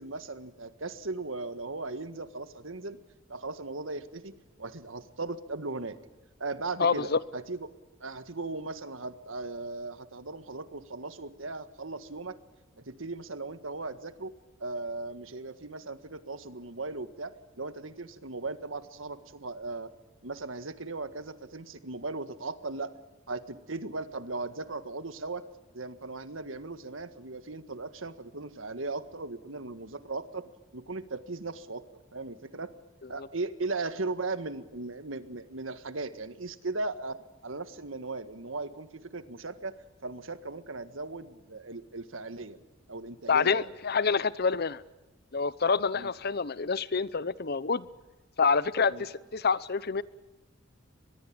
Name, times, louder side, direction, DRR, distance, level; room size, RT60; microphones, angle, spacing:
voice 1, 0.0-3.0 3.3-4.3 4.6-6.0 6.4-7.7 8.0-12.4 12.8-14.3 14.6-19.9 20.2-22.9 23.3-25.5 25.7-32.7 33.1-39.7 40.0-42.6 42.9-43.7 45.9-46.1 48.9-49.1, right 3 dB, 80° right, 12 dB, 1.7 m, -37 dB
voice 2, 6.8-7.2 33.2-33.3 43.3-44.8 45.3-47.9 48.4-50.0, left 5 dB, 50° left, 18 dB, 0.8 m, -27 dB
23.5 x 21.5 x 8.8 m, 1.1 s
head